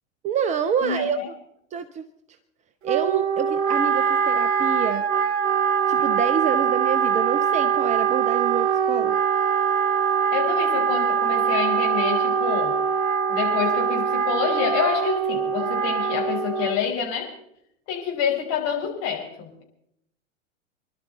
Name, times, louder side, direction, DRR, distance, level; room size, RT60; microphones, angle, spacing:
voice 1, 0.2-1.2 1.7-2.1 2.8-5.1 5.9-9.2, right 7 dB, 20° right, 13 dB, 0.5 m, -27 dB
voice 2, 0.8-1.3 10.3-12.8 13.3-17.3 17.9-19.6, left 7 dB, 40° left, 0 dB, 4.9 m, -27 dB
Wind instrument woodwind instrument, 2.8-16.9, right 7 dB, 40° right, 1.0 m, -23 dB
26.0 x 11.5 x 4.0 m, 0.76 s
figure-of-eight pair, 95°, 38 cm